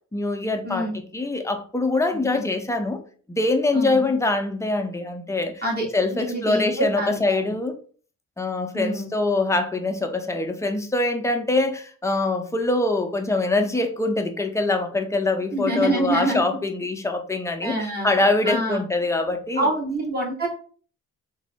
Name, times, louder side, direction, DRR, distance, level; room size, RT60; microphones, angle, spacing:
voice 1, 0.1-3.0 3.3-5.6 5.9-7.7 8.4-19.7, left 2 dB, 10° left, 0.6 m, -24 dB
voice 2, 2.1-2.4 3.7-4.0 5.6-5.9 6.1-7.4 8.7-9.1 15.5-16.4 17.6-18.1 18.4-18.8 19.5-20.5, right 1 dB, 30° right, 1.4 m, -26 dB
3.7 x 2.0 x 3.4 m
cardioid pair, 90°, 30 cm